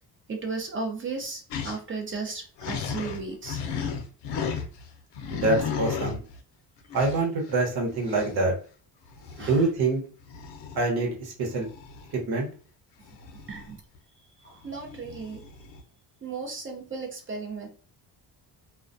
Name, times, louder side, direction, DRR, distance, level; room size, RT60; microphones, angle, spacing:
voice 1, 0.3-3.6 9.3-9.7 13.5-13.8 14.4-15.4 16.2-17.7, right 4 dB, 30° right, 2 dB, 0.6 m, -35 dB
sound 1, 1.5-1.8 2.1-2.2 2.6-4.9 5.1-6.4 6.9-7.2 7.9-8.4 9.1-9.6 10.2-10.8 11.6-12.2 13.1-14.0 14.7-15.8, left 6 dB, 70° left, 0.6 m, -34 dB
voice 2, 5.3-6.2 6.9-8.5 9.4-10.0 10.7-11.7 12.3-12.5, right 3 dB, 60° right, 0 dB, 1.0 m, -25 dB
2.2 x 2.2 x 2.5 m, 0.38 s
cardioid pair, 120°, 42 cm